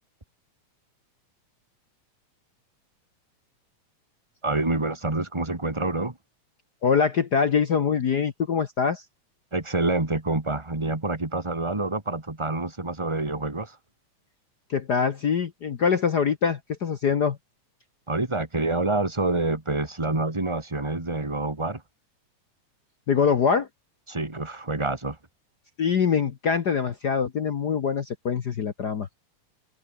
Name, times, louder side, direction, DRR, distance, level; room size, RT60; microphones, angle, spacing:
voice 1, 4.4-6.2 9.5-13.8 18.1-21.8 24.1-25.2, right 2 dB, 10° right, 2.0 m, -27 dB
voice 2, 6.8-9.0 14.7-17.4 23.1-23.7 25.8-29.1, left 6 dB, 65° left, 1.0 m, -24 dB
omnidirectional pair, 3.6 m